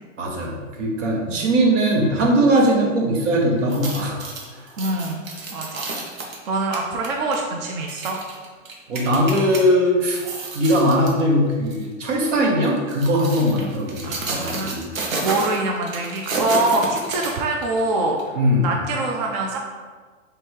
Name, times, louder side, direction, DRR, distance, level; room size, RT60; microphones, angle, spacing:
voice 1, 0.2-4.2 8.9-10.2 10.5-14.9 18.3-18.7, equal, 65° right, 0 dB, 1.2 m, -20 dB
sound 1, 3.6-9.6 10.0-11.2 11.7-11.9 12.7-17.8 18.2-18.3, right 3 dB, 85° right, 1.0 m, -31 dB
voice 2, 4.8-5.2 5.5-5.9 6.5-8.2 14.0-14.9 15.2-18.2 18.6-19.6, right 2 dB, 35° right, 0 dB, 0.4 m, -24 dB
3.4 x 3.2 x 4.4 m, 1.5 s
hypercardioid pair, 135°, 39 cm